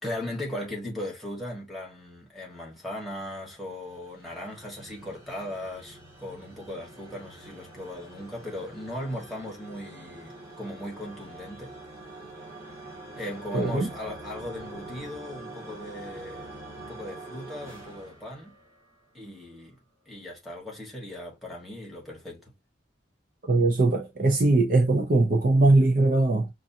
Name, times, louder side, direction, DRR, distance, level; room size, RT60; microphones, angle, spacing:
voice 1, 0.0-11.7 13.2-18.5 19.1-19.8 20.1-22.4, left 1 dB, ahead, 1.3 m, -38 dB
sound 1, 3.1-19.1, right 2 dB, 15° right, 1.5 m, -45 dB
voice 2, 13.5-13.9 23.5-26.5, right 2 dB, 45° right, 0.5 m, -21 dB
5.2 x 2.4 x 2.7 m
head